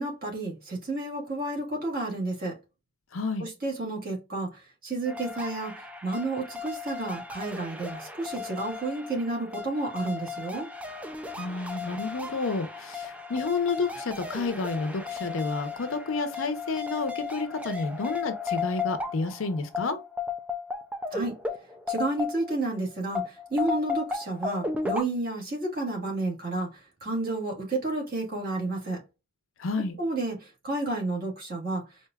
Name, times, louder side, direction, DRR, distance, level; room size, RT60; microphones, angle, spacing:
voice 1, 0.0-2.5 3.4-10.7 21.1-21.4 21.9-29.0 30.0-31.8, right 2 dB, 45° right, 1.6 m, -31 dB
voice 2, 3.1-3.5 11.4-20.0 29.6-30.0, left 3 dB, 75° left, 0.6 m, -30 dB
sound 1, 5.1-22.7 23.1-25.0, left 5 dB, 5° right, 0.3 m, -35 dB
4.6 x 2.5 x 2.3 m
head